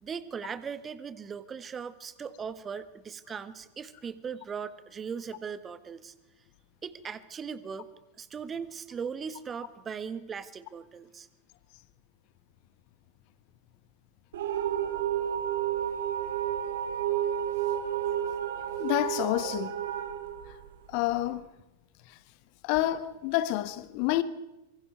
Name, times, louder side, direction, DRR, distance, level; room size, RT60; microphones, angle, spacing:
voice 1, 0.0-6.1 6.8-7.9 8.2-11.3, right 6 dB, 20° right, 1.4 m, -39 dB
sound 1, 14.3-21.2, right 10 dB, 60° right, 2.5 m, -31 dB
voice 2, 18.8-19.8 20.9-21.5 22.6-24.2, left 15 dB, 45° left, 1.3 m, -28 dB
25.5 x 24.0 x 4.7 m
figure-of-eight pair, 90°, 0 cm